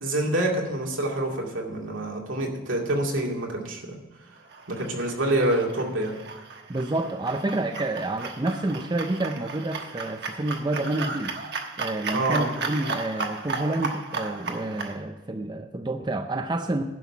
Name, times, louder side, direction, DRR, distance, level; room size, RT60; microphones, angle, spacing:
voice 1, 0.0-4.0 4.7-6.2 12.1-12.5, right 1 dB, 80° right, 0 dB, 2.2 m, -26 dB
sound 1, 4.5-15.0, right 4 dB, 55° right, 1.2 m, -35 dB
voice 2, 6.7-11.3 11.8-16.8, right 2 dB, 20° right, 6 dB, 0.5 m, -29 dB
11.0 x 6.3 x 7.1 m, 1.2 s
head